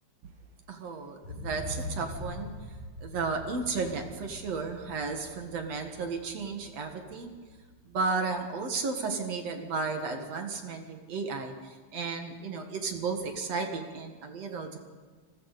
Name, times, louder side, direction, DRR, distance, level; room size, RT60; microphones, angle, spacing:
voice 1, 0.7-2.5 3.0-7.4 7.9-14.8, right 4 dB, 60° right, 5 dB, 2.8 m, -33 dB
sound 1, 1.2-9.1 9.5-9.6, left 1 dB, 55° left, 6.4 m, -43 dB
29.5 x 20.5 x 4.2 m, 1.5 s
omnidirectional pair, 3.4 m